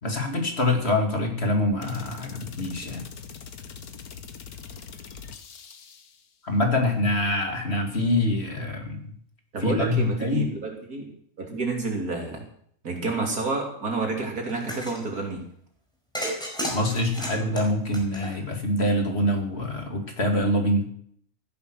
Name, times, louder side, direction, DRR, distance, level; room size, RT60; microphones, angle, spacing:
voice 1, 0.0-3.1 6.4-9.1 9.6-10.5 16.7-20.9, left 1 dB, 45° left, 3 dB, 2.9 m, -25 dB
sound 1, 1.8-6.3, left 6 dB, 85° left, 1.7 m, -43 dB
voice 2, 9.5-11.1 11.4-12.4 12.8-15.4, right 3 dB, 90° right, 1 dB, 3.7 m, -29 dB
sound 2, 14.5-15.0 16.1-18.6, equal, 5° left, 4.8 m, -33 dB
15.5 x 11.0 x 6.4 m, 0.64 s
omnidirectional pair, 1.5 m